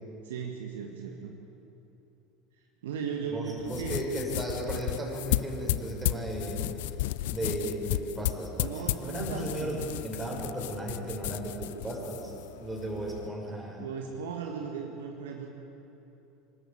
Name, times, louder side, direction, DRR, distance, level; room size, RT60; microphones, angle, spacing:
voice 1, 0.2-1.3 2.8-4.0 8.6-10.0 13.8-15.5, right 6 dB, 70° right, 1 dB, 1.9 m, -37 dB
voice 2, 3.3-6.6 7.3-12.3 12.6-13.9, right 1 dB, 15° right, -1 dB, 6.0 m, -35 dB
sound 1, 3.6-13.3, left 16 dB, 65° left, 0.4 m, -34 dB
25.0 x 13.0 x 8.2 m, 2.9 s
figure-of-eight pair, 75°, 0 cm